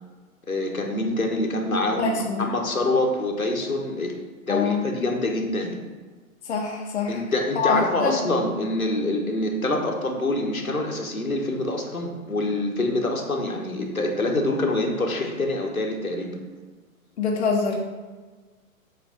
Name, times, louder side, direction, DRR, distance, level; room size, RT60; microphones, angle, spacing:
voice 1, 0.5-4.1 4.5-5.8 7.1-16.4, left 2 dB, 80° left, 1 dB, 1.3 m, -25 dB
voice 2, 2.0-2.5 4.5-4.8 6.5-7.2 7.6-8.2 17.2-17.8, left 5 dB, 55° left, 1 dB, 0.9 m, -25 dB
7.9 x 3.3 x 5.2 m, 1.4 s
figure-of-eight pair, 120°, 42 cm